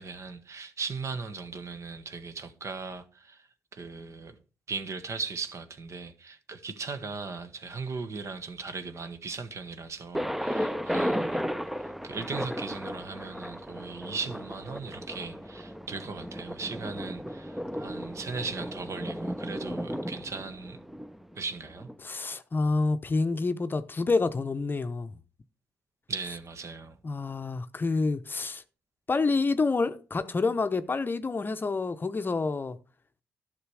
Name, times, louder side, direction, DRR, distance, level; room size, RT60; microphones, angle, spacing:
voice 1, 0.0-4.4 4.7-11.5 12.0-20.8 21.3-21.9 26.1-27.0, right 4 dB, 45° right, 1.3 m, -38 dB
Thunder, 10.1-21.9, equal, 5° right, 0.6 m, -34 dB
voice 2, 22.0-25.1 27.0-28.6 29.1-32.8, left 3 dB, 30° left, 0.8 m, -28 dB
11.0 x 6.0 x 4.8 m
hypercardioid pair, 50°, 7 cm